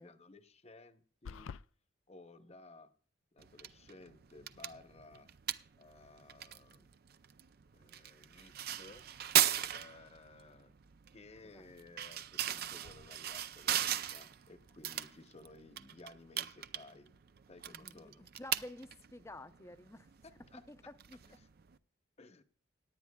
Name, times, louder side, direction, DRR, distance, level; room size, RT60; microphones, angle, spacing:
voice 1, 0.0-1.6 2.1-2.9 3.3-5.3 5.8-6.9 7.7-9.1 9.7-10.7 11.1-17.1 17.5-18.3 20.2-20.6 21.3-21.5 22.2-22.4, left 2 dB, 35° left, 0.9 m, -57 dB
sound 1, 1.2-1.6, left 6 dB, 85° left, 0.4 m, -45 dB
sound 2, 3.4-21.8, right 11 dB, 50° right, 0.5 m, -39 dB
voice 2, 17.7-20.1 20.5-21.2, left 1 dB, 15° left, 0.6 m, -51 dB
17.5 x 10.0 x 2.3 m
head